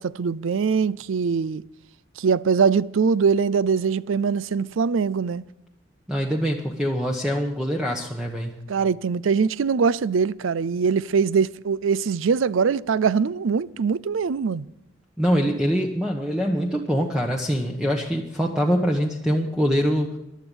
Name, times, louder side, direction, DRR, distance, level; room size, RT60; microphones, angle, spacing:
voice 1, 0.0-1.6 2.2-5.4 8.7-14.7, right 5 dB, 80° right, 0.4 m, -22 dB
voice 2, 6.1-8.6 15.2-20.2, equal, 5° right, 1.0 m, -24 dB
15.5 x 11.5 x 5.4 m
head